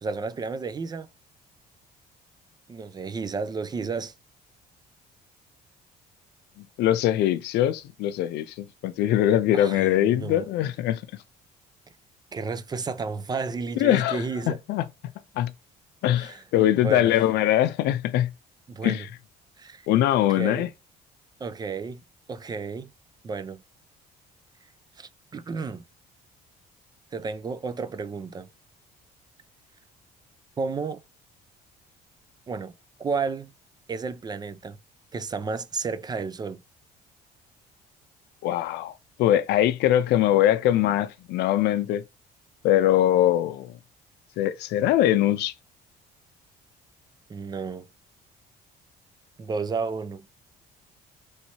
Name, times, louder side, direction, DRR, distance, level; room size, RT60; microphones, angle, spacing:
voice 1, 0.0-1.1 2.7-4.1 9.5-10.5 12.3-14.6 16.1-16.4 16.7-17.1 18.7-19.1 19.6-19.9 20.2-20.7 21.4-22.0 22.3-22.9 23.2-23.6 25.0-25.8 27.1-28.5 30.6-31.0 32.5-32.7 33.0-33.5 33.9-34.8 35.1-36.6 47.3-47.9 49.4-50.3, right 4 dB, 25° right, 0.3 m, -32 dB
voice 2, 6.8-11.0 13.8-14.8 15.4-15.5 16.0-18.3 18.8-19.0 19.9-20.7 38.4-38.9 39.2-42.0 42.6-43.7 44.4-45.5, left 12 dB, 80° left, 0.5 m, -22 dB
3.1 x 2.8 x 2.8 m
cardioid pair, 110°, 17 cm